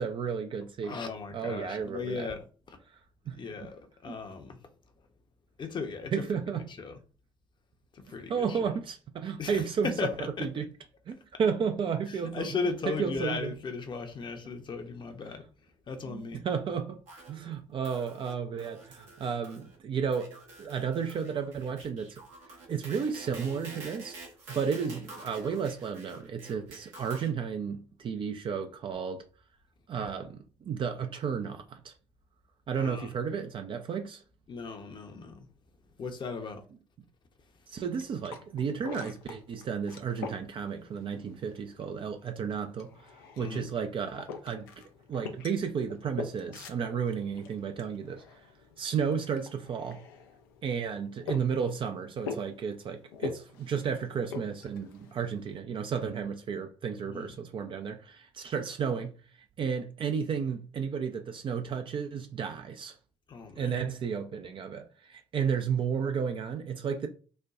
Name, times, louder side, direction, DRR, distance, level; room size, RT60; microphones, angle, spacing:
voice 1, 0.0-1.0 1.3-2.3 3.3-3.4 4.1-4.2 6.1-6.6 8.3-9.9 10.4-10.7 11.1-12.5 12.9-13.5 16.1-17.0 17.3-22.2 22.7-24.2 24.5-29.2 29.9-31.9 32.7-34.2 37.7-42.9 43.4-44.7 45.1-48.2 48.8-50.0 50.6-59.2 59.6-62.9 63.6-67.1, right 6 dB, 45° right, 0.5 m, -33 dB
voice 2, 0.8-2.8 3.3-4.7 5.0-5.1 5.6-6.2 6.7-7.0 7.9-8.7 9.4-10.7 12.1-15.5 15.9-16.4 32.8-33.1 34.5-35.5 36.0-36.6 37.5-37.6 43.4-43.7 57.0-57.3 63.3-63.8, left 4 dB, 40° left, 0.7 m, -37 dB
sound 1, 17.1-17.6 17.8-18.3 18.6-19.8 20.1-27.3, right 3 dB, 75° right, 1.2 m, -48 dB
sound 2, 37.8-55.6, left 5 dB, 80° left, 0.5 m, -45 dB
4.2 x 2.2 x 2.4 m
hypercardioid pair, 50°, 12 cm